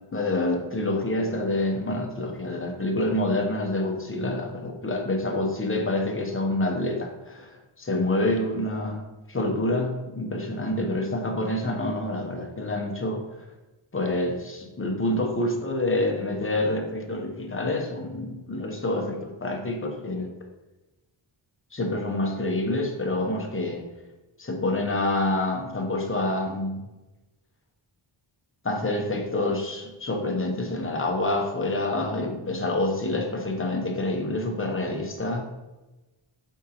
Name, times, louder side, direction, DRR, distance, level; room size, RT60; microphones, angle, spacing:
voice 1, 0.1-13.2 13.9-20.3 21.7-23.8 24.4-26.8 28.6-35.5, left 2 dB, 25° left, 2 dB, 0.7 m, -27 dB
4.8 x 3.6 x 2.8 m, 1.1 s
wide cardioid pair, 75°, 50 cm